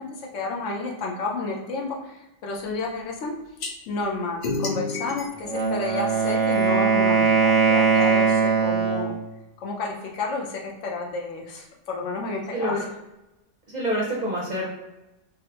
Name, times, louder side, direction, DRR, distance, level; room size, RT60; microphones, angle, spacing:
voice 1, 0.0-3.3 3.9-9.1 9.6-13.0, left 3 dB, 75° left, 0 dB, 1.0 m, -31 dB
sound 1, 3.6-3.7 4.4-6.6, left 3 dB, 55° left, 0.6 m, -31 dB
Wind instrument woodwind instrument, 5.4-9.2, right 5 dB, 85° right, 1.0 m, -20 dB
voice 2, 12.5-12.8 13.7-14.7, equal, 45° right, -4 dB, 0.6 m, -26 dB
3.5 x 2.1 x 2.8 m, 0.97 s
omnidirectional pair, 1.3 m